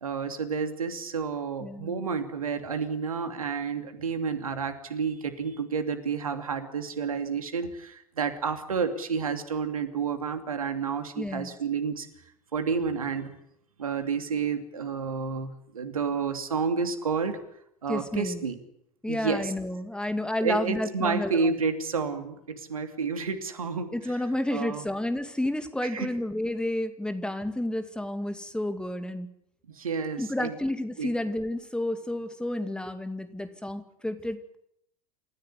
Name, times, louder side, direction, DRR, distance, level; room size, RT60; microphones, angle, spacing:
voice 1, 0.0-12.1 12.5-13.3 13.8-17.4 17.8-18.6 19.1-19.5 20.4-23.9 24.5-24.8 25.8-26.1 29.7-30.6 31.0-31.1, right 5 dB, 75° right, 7 dB, 2.9 m, -30 dB
voice 2, 1.6-2.1 11.2-11.5 17.9-18.5 19.0-21.5 23.9-29.3 30.2-34.6, left 1 dB, 5° left, 9 dB, 2.4 m, -31 dB
28.5 x 15.0 x 9.9 m, 0.74 s
figure-of-eight pair, 75°, 18 cm